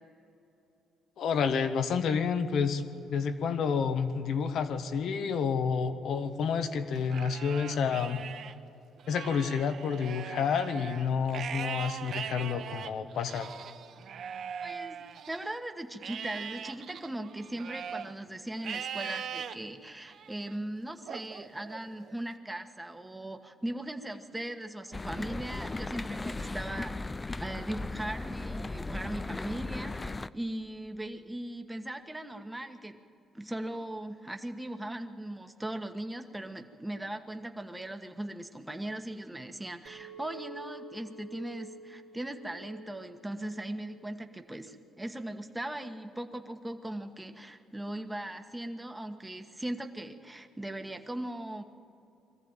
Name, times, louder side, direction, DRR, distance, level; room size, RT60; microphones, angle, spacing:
voice 1, 1.2-2.8 3.1-8.3 9.1-13.5, left 6 dB, 70° left, 9 dB, 1.3 m, -29 dB
Livestock farm animals working animals, 7.0-8.5 9.0-15.5 16.0-18.1 18.6-19.5 20.1-20.5 21.1-22.2, right 8 dB, 60° right, 0.8 m, -40 dB
voice 2, 14.6-33.0 33.3-51.6, right 1 dB, 10° right, 5 dB, 1.4 m, -39 dB
sound 1, 24.9-30.3, left 2 dB, 20° left, 0.4 m, -37 dB
Chink clink, 39.9-45.1, right 3 dB, 90° right, 2.8 m, -50 dB
22.0 x 14.5 x 9.0 m, 2.7 s
cardioid pair, 95°, 0 cm